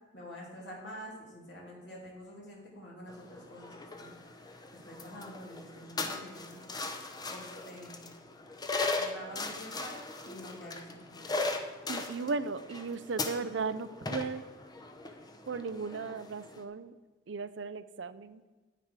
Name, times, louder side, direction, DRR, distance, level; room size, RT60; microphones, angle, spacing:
voice 1, 0.1-4.1 4.8-6.6 7.3-8.1 9.0-11.4, equal, 65° left, -4 dB, 2.8 m, -47 dB
sound 1, 3.1-16.6, left 3 dB, 20° left, 0.8 m, -39 dB
voice 2, 11.9-14.4 15.5-16.9 17.3-18.4, right 4 dB, 75° right, 14 dB, 0.5 m, -36 dB
9.8 x 8.9 x 4.7 m, 1.3 s
head